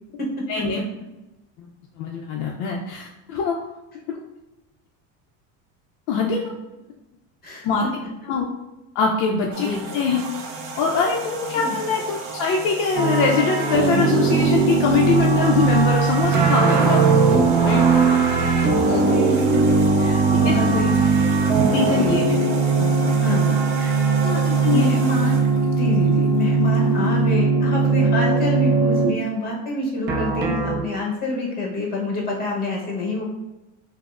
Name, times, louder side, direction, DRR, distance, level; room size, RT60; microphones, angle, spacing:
voice 1, 0.5-0.8 1.6-1.7 2.0-3.6 6.1-6.4 7.6-7.9 8.3-8.5 8.9-10.3 10.8-17.0 17.6-17.8 18.7-19.0 20.3-20.8 21.7-22.4 23.0-23.4 24.4-24.9, left 5 dB, 55° left, -1 dB, 0.5 m, -23 dB
sound 1, 9.5-27.2, right 4 dB, 70° right, 0.7 m, -35 dB
sound 2, 12.9-29.1 30.1-30.8, right 4 dB, 30° right, 0.4 m, -19 dB
voice 2, 19.0-19.6 20.0-20.9 21.7-22.4 23.2-23.9 24.2-24.4 24.7-25.4 25.7-33.2, left 2 dB, 25° left, -2 dB, 0.8 m, -27 dB
5.0 x 2.0 x 2.4 m, 0.98 s
cardioid pair, 160°, 38 cm